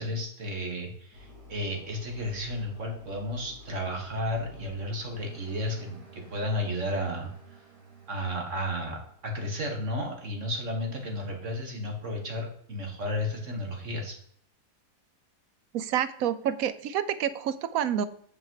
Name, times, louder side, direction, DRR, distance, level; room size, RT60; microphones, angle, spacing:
voice 1, 0.0-7.3 8.1-14.2, left 1 dB, 50° right, 2 dB, 2.3 m, -33 dB
sound 1, 1.1-9.4, right 1 dB, 90° right, 3.5 m, -51 dB
voice 2, 15.7-18.0, right 9 dB, 70° right, 15 dB, 1.1 m, -28 dB
8.9 x 6.6 x 4.8 m, 0.63 s
omnidirectional pair, 1.7 m